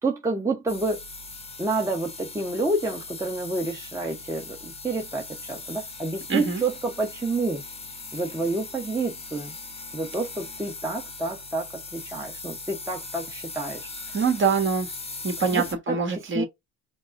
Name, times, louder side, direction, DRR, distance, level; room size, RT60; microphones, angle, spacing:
voice 1, 0.0-1.0 1.6-7.6 8.1-9.5 9.9-14.2 15.5-16.0 16.3-16.4, right 3 dB, 10° right, 1.0 m, -29 dB
sound 1, 0.7-15.7, left 3 dB, 15° left, 1.0 m, -39 dB
voice 2, 6.3-6.6 14.1-14.9 15.2-16.4, right 5 dB, 30° right, 1.5 m, -24 dB
5.2 x 2.1 x 2.5 m
cardioid pair, 110°, 37 cm